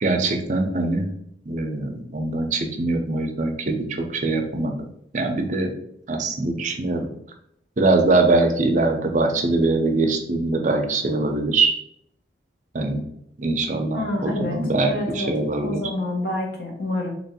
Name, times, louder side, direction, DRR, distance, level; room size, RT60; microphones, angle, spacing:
voice 1, 0.0-1.1 1.5-3.8 4.1-4.9 5.1-5.7 6.1-7.1 7.8-11.7 12.7-13.0 13.4-15.8, right 2 dB, 40° right, 3 dB, 0.5 m, -22 dB
voice 2, 13.9-15.3 15.6-17.1, left 1 dB, 55° left, -1 dB, 1.0 m, -28 dB
2.9 x 2.6 x 4.1 m, 0.73 s
head